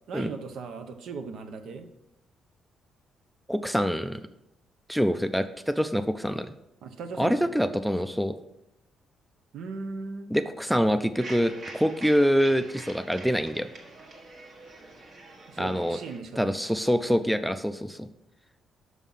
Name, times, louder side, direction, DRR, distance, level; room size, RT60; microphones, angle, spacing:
voice 1, 0.1-1.9 6.8-7.5 9.5-10.3 15.5-16.6, right 4 dB, 70° right, 7 dB, 0.8 m, -38 dB
voice 2, 3.5-4.2 4.9-6.5 7.2-8.4 10.3-13.7 15.6-16.0 16.4-18.1, equal, ahead, 10 dB, 0.3 m, -25 dB
sound 1, 11.2-16.2, right 2 dB, 50° right, 1.4 m, -45 dB
6.2 x 5.5 x 5.6 m, 0.85 s
cardioid pair, 130°, 0 cm